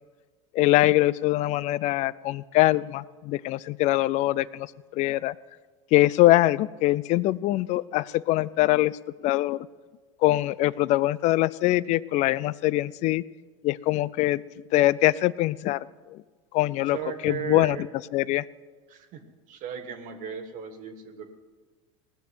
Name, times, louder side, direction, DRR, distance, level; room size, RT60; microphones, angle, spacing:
voice 1, 0.5-5.3 5.9-9.0 9.2-9.7 10.2-13.2 13.6-14.4 14.7-15.8 16.1-16.2 16.5-17.0 17.2-17.8 18.1-18.4, left 16 dB, 45° left, 21 dB, 0.4 m, -23 dB
voice 2, 16.9-17.8 18.9-19.2 19.5-21.3, right 7 dB, 50° right, 8 dB, 1.7 m, -36 dB
18.5 x 6.8 x 8.0 m, 1.4 s
supercardioid pair, 110°, 17 cm